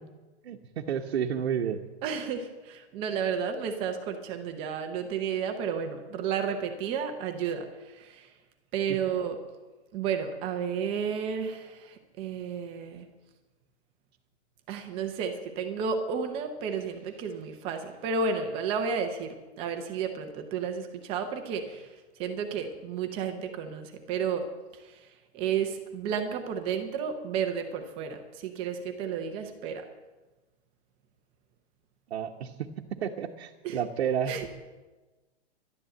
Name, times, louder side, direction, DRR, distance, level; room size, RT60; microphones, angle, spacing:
voice 1, 0.4-1.8 32.1-32.7 33.0-34.3, right 8 dB, 65° right, 0 dB, 1.1 m, -31 dB
voice 2, 2.0-8.3 8.7-9.4 9.9-13.1 14.7-24.5 24.7-29.9 33.6-33.8 34.3-34.5, right 6 dB, 15° right, 6 dB, 0.8 m, -32 dB
12.0 x 11.5 x 7.8 m, 1.2 s
hypercardioid pair, 165°, 34 cm